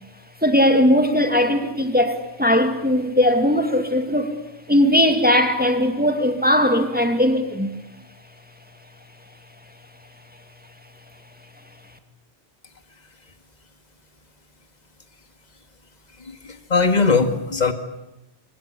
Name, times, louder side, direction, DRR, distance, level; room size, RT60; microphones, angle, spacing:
voice 1, 0.4-4.4 4.7-7.7, left 1 dB, 5° right, 2.3 m, -19 dB
voice 2, 16.2-17.7, left 4 dB, 35° left, 2.0 m, -20 dB
25.0 x 21.0 x 8.6 m
omnidirectional pair, 1.2 m